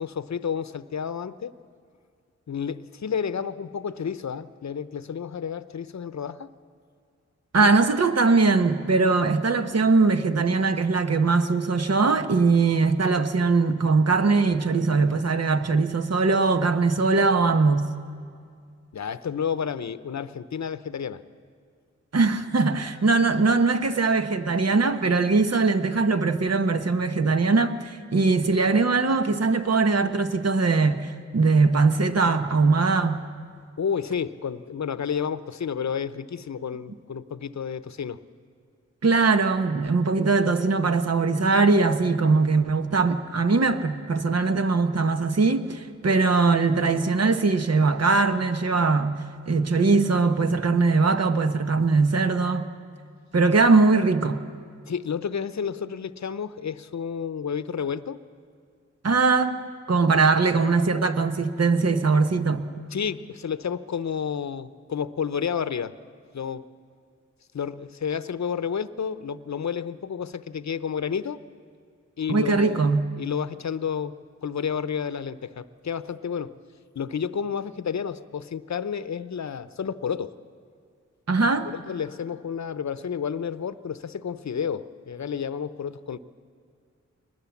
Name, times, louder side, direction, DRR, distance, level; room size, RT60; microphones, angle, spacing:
voice 1, 0.0-1.5 2.5-6.5 7.5-7.8 18.9-21.2 33.8-38.2 54.9-58.2 62.9-65.9 66.3-66.7 67.5-71.4 72.2-72.8 73.2-76.6 77.0-80.3 81.4-86.2, left 7 dB, 65° left, 0.7 m, -31 dB
voice 2, 7.5-17.9 22.1-33.2 39.0-49.2 49.5-52.7 53.3-54.4 59.0-59.6 59.9-62.7 72.3-73.1 81.3-81.7, right 4 dB, 55° right, 1.1 m, -21 dB
23.5 x 20.0 x 7.2 m
wide cardioid pair, 70°, 30 cm